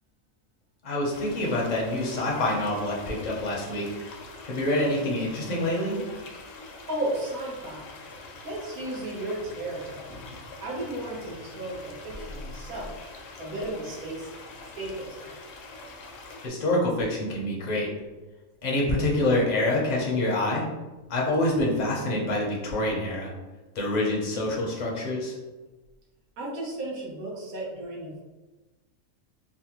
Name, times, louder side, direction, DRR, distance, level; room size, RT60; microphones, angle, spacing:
voice 1, 0.8-4.0 4.4-6.0 16.4-17.9 18.6-20.7 21.1-23.3 23.7-25.3, left 1 dB, 45° left, -2 dB, 0.6 m, -26 dB
sound 1, 1.1-16.5, left 3 dB, 75° left, 0.9 m, -44 dB
voice 2, 6.9-7.9 8.4-10.3 10.6-12.9 13.4-14.3 14.8-15.1 26.4-28.2, right 1 dB, 90° right, -4 dB, 1.3 m, -34 dB
3.4 x 2.2 x 2.9 m, 1.2 s
omnidirectional pair, 1.4 m